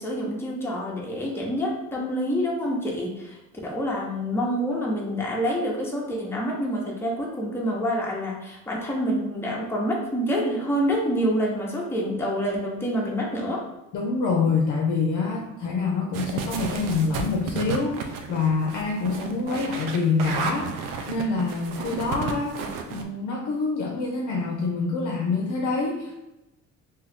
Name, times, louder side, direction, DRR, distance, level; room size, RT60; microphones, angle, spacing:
voice 1, 0.0-13.6, equal, 5° left, -3 dB, 0.8 m, -27 dB
voice 2, 13.9-20.7 21.1-26.2, left 4 dB, 65° left, 0 dB, 0.6 m, -26 dB
sound 1, 16.1-23.0, right 5 dB, 85° right, 0.5 m, -32 dB
2.8 x 2.3 x 3.5 m, 0.93 s
cardioid pair, 90°, 31 cm